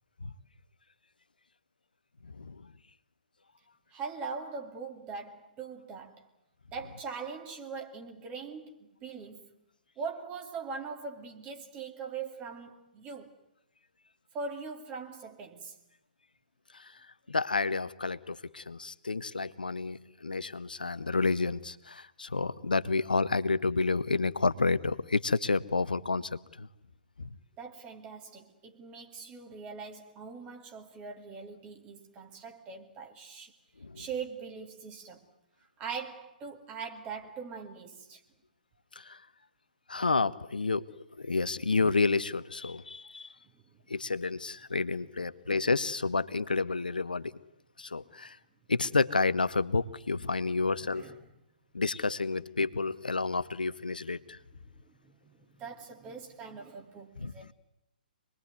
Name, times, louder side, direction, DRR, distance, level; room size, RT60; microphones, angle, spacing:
voice 1, 3.9-6.3 6.7-9.5 10.0-13.4 14.3-15.8 27.6-33.5 34.0-35.3 35.8-38.2 43.5-43.6 44.0-44.1 45.0-45.1 50.4-51.3 52.6-52.7 54.6-57.5, right 5 dB, 20° right, 2.6 m, -42 dB
voice 2, 17.3-26.3 26.6-26.7 27.2-27.3 33.8-34.0 39.1-39.2 39.9-40.8 41.2-43.3 43.9-47.3 47.8-48.4 48.7-51.0 51.7-54.4 57.2-57.3, left 3 dB, 75° left, 1.1 m, -30 dB
26.0 x 21.5 x 9.6 m
figure-of-eight pair, 125°, 5 cm